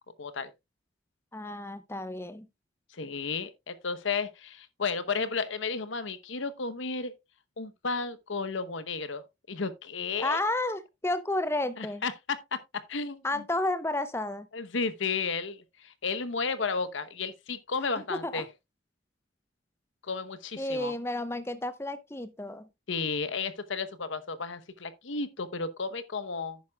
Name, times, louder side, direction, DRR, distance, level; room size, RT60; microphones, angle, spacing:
voice 1, 0.2-0.5 2.9-7.1 7.6-9.2 9.5-10.4 11.8-12.4 12.9-13.4 14.5-18.4 20.0-20.9 22.9-26.6, left 4 dB, 75° left, 0.9 m, -33 dB
voice 2, 1.3-2.5 10.2-12.0 13.2-14.5 17.8-18.5 20.6-22.7, left 2 dB, 15° left, 0.7 m, -32 dB
11.0 x 9.2 x 2.3 m
head